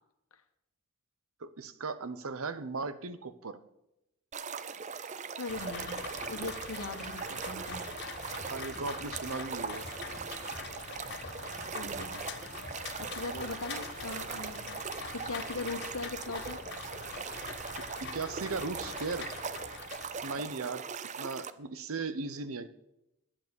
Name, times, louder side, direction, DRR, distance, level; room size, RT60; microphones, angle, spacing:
voice 1, 1.4-3.6 8.5-9.9 18.0-19.3 20.2-20.8 21.2-22.7, right 4 dB, 80° right, 13 dB, 0.8 m, -37 dB
sound 1, 4.3-21.5, right 6 dB, 35° right, 0.5 m, -40 dB
voice 2, 5.4-7.8 11.7-12.2 13.0-15.0 15.2-16.9, left 3 dB, 85° left, 8 dB, 1.3 m, -40 dB
Rain, 5.5-20.4, left 5 dB, 50° left, 1.0 m, -43 dB
sound 2, 7.7-7.8 8.2-9.2 9.6-10.7 11.0-13.4, equal, ahead, 3.6 m, -50 dB
10.5 x 8.6 x 7.0 m, 0.86 s
head